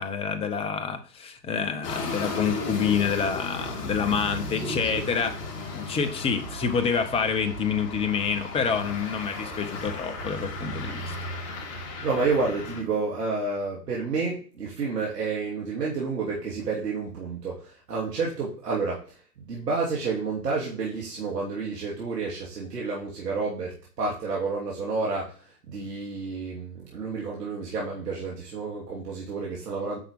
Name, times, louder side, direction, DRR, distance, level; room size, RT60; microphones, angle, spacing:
voice 1, 0.0-5.4 5.7-11.1, left 6 dB, 10° left, 8 dB, 0.8 m, -27 dB
sound 1, 1.8-12.8, left 2 dB, 30° left, 2.9 m, -35 dB
voice 2, 4.6-5.0 12.0-19.0 19.4-25.3 25.7-30.0, right 4 dB, 75° right, -3 dB, 3.1 m, -30 dB
10.0 x 5.8 x 3.6 m, 0.41 s
hypercardioid pair, 125°, 48 cm